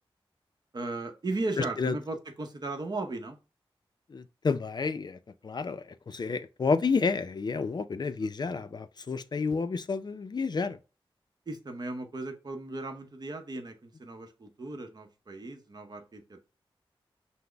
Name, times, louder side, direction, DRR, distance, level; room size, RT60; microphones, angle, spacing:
voice 1, 0.7-3.4 8.2-8.6 11.5-16.5, right 2 dB, 45° right, 0.8 m, -37 dB
voice 2, 1.6-2.0 4.1-10.8, left 4 dB, 45° left, 0.4 m, -30 dB
5.9 x 2.0 x 3.3 m
wide cardioid pair, 95°, 10 cm